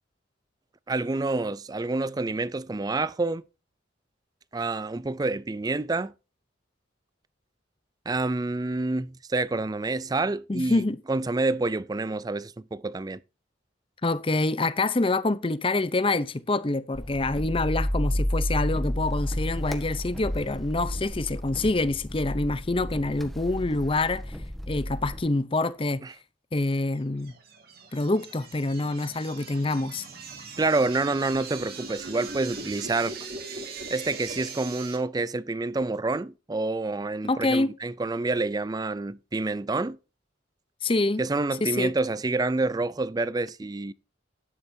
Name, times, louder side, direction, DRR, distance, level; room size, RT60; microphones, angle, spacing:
voice 1, 0.9-3.4 4.5-6.1 8.1-13.2 26.0-26.1 30.6-33.2 33.9-40.0 41.2-43.9, right 3 dB, 20° right, 0.4 m, -28 dB
voice 2, 10.5-11.0 14.0-24.4 24.7-26.0 26.5-27.3 27.9-30.1 37.3-37.7 40.8-41.2 41.6-41.9, left 2 dB, 30° left, 0.6 m, -26 dB
sound 1, 16.9-25.2, equal, ahead, 1.3 m, -31 dB
sound 2, 27.0-35.0, right 4 dB, 50° right, 2.9 m, -40 dB
12.5 x 10.0 x 2.7 m
head